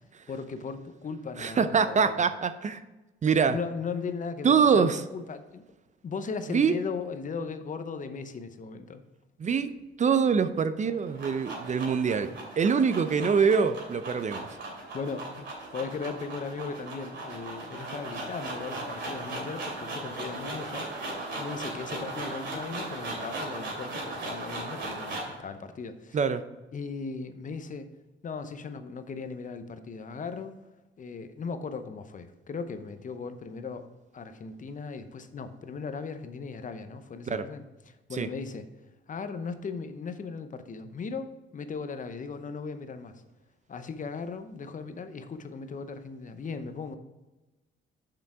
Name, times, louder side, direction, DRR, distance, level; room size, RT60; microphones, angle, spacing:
voice 1, 0.3-2.2 3.3-4.9 5.1-5.7 6.0-9.0 14.9-20.9 21.4-26.2 26.7-27.9 28.2-30.6 31.0-33.9 34.1-38.7 39.1-43.2 43.7-47.0, left 5 dB, 40° left, 10 dB, 0.7 m, -37 dB
voice 2, 1.4-2.8 3.2-3.6 4.4-5.0 6.5-6.8 9.4-9.7 10.0-14.5 26.1-26.4 37.3-37.5 38.2-38.3, right 6 dB, 40° right, 12 dB, 0.5 m, -24 dB
sound 1, 10.8-25.4, right 2 dB, 65° right, 2.9 m, -37 dB
6.8 x 5.9 x 4.7 m, 1.1 s
cardioid pair, 90°, 20 cm